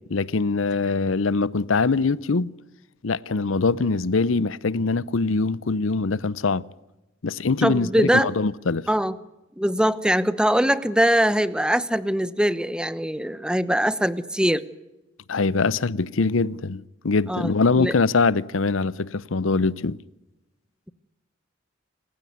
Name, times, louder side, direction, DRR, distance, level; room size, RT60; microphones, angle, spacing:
voice 1, 0.1-2.5 3.0-6.6 7.2-8.9 15.3-20.0, left 4 dB, 85° left, 0.7 m, -23 dB
voice 2, 7.6-8.3 8.9-9.2 9.6-14.6 17.3-17.9, equal, 5° right, 0.9 m, -22 dB
28.0 x 16.0 x 9.5 m
head